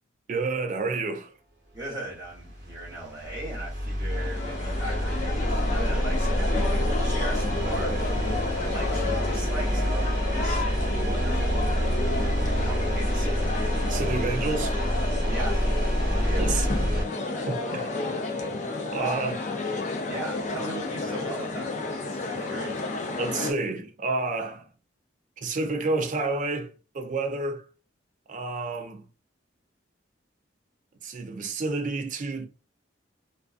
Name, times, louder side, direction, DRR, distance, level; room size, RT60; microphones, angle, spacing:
voice 1, 0.3-1.3 13.9-14.8 16.4-16.7 17.5-17.9 18.9-19.4 23.2-24.7 25.4-27.7 28.3-29.0 31.0-32.5, right 3 dB, 40° right, 0.4 m, -29 dB
voice 2, 1.7-7.9 8.6-11.7 12.6-13.5 15.3-15.6 16.1-16.5 17.0-17.5 18.4-18.6 19.0-19.2 20.0-22.8, right 2 dB, 20° right, 1.1 m, -39 dB
sound 1, 2.1-17.0, equal, 65° right, 1.0 m, -27 dB
sound 2, 4.1-23.5, left 3 dB, 35° left, 0.4 m, -31 dB
2.4 x 2.3 x 2.4 m
head